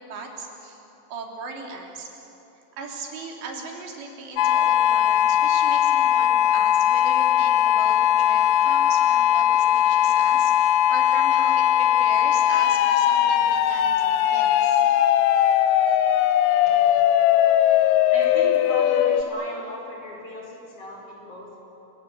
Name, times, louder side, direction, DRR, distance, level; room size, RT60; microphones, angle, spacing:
voice 1, 0.1-0.8 1.1-2.1 2.8-13.9 14.3-15.0, right 4 dB, 85° right, 1 dB, 5.2 m, -38 dB
sound 1, 4.4-19.2, left 11 dB, 80° left, 1.9 m, -19 dB
voice 2, 18.1-21.6, left 1 dB, 35° left, -1 dB, 5.8 m, -37 dB
29.5 x 21.0 x 9.3 m, 2.9 s
omnidirectional pair, 4.9 m